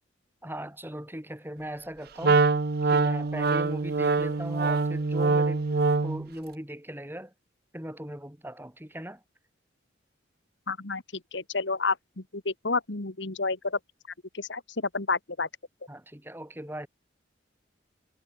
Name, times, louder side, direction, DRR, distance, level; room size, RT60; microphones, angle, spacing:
voice 1, 0.4-2.4 2.9-7.3 7.7-9.2 15.9-16.9, right 1 dB, 10° right, 7.4 m, -39 dB
Wind instrument woodwind instrument, 2.2-6.3, right 3 dB, 55° right, 0.7 m, -24 dB
voice 2, 10.7-11.0 11.3-13.8 14.3-15.5, left 3 dB, 70° left, 1.8 m, -30 dB
head